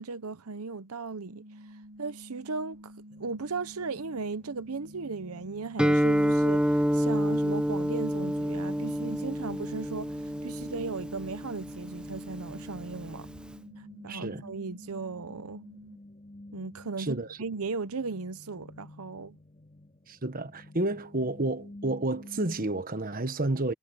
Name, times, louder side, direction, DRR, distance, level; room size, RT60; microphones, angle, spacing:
voice 1, 0.0-1.5 2.0-2.8 3.2-13.3 13.8-15.6 16.5-19.4, right 4 dB, 80° right, 0.8 m, -37 dB
sound 1, 1.3-16.0, equal, 65° right, 7.6 m, -50 dB
sound 2, 3.1-22.8, left 1 dB, 30° left, 2.7 m, -51 dB
Guitar, 5.8-13.5, equal, 5° right, 0.6 m, -28 dB
voice 2, 14.1-14.4 17.0-17.4 20.1-23.7, right 2 dB, 40° right, 1.2 m, -30 dB
head